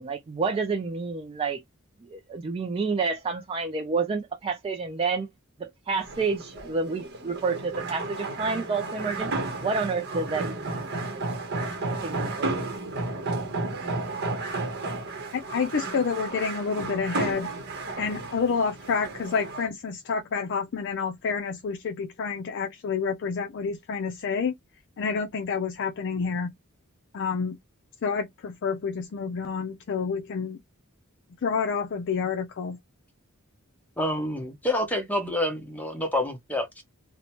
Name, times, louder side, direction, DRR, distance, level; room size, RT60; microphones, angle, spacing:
voice 1, 0.0-1.6 2.1-5.3 5.6-9.3 9.6-11.2 11.9-12.8, right 4 dB, 25° right, 0.3 m, -29 dB
sound 1, 5.9-19.7, right 2 dB, 55° right, 0.9 m, -33 dB
voice 2, 15.3-17.5 18.0-24.5 25.0-26.5 27.1-27.6 28.0-30.6 31.4-32.8, left 5 dB, 60° left, 0.4 m, -29 dB
voice 3, 34.0-36.8, left 1 dB, 10° left, 0.8 m, -28 dB
2.7 x 2.1 x 2.9 m
head